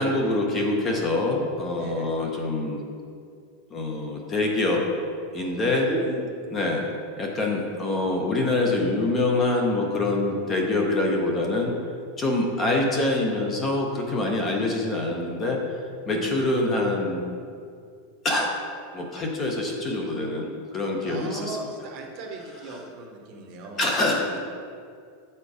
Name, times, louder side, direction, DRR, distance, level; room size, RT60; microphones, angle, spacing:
voice 1, 0.0-2.8 3.7-4.9 5.3-5.9 6.5-6.9 7.2-11.8 12.2-15.8 16.1-17.2 18.2-18.6 18.9-21.6 22.7-22.8 23.8-24.4, left 2 dB, 15° left, 1 dB, 0.7 m, -25 dB
voice 2, 1.8-2.1 5.8-6.3 6.6-6.8 16.1-16.4 21.0-23.8, right 3 dB, 35° right, 2 dB, 0.9 m, -36 dB
7.9 x 4.4 x 4.9 m, 2.3 s
supercardioid pair, 175°, 0 cm